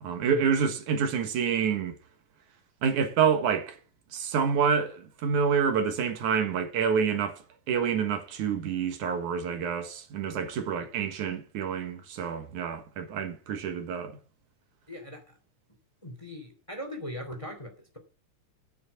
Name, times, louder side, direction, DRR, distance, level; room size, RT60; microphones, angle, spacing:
voice 1, 0.0-2.0 2.8-3.8 4.1-7.4 7.7-14.2, right 6 dB, 80° right, 3.0 m, -27 dB
voice 2, 14.9-15.3 16.0-18.0, equal, 10° left, 2.3 m, -40 dB
9.4 x 9.3 x 7.1 m
omnidirectional pair, 3.5 m